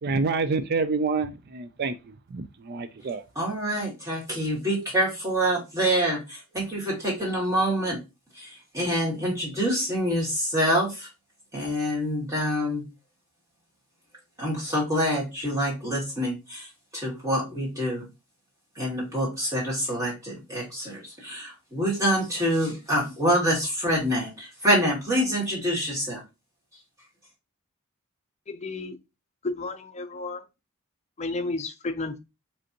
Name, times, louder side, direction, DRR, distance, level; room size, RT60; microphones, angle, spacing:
voice 1, 0.0-3.2, right 4 dB, 45° right, 0.4 m, -28 dB
voice 2, 3.4-8.0 8.3-11.1 11.5-12.8 14.4-18.1 18.8-26.2, equal, 15° right, 2.4 m, -26 dB
voice 3, 28.5-29.0 29.4-30.4 31.2-32.2, left 3 dB, 30° left, 0.6 m, -32 dB
5.2 x 3.4 x 2.9 m
head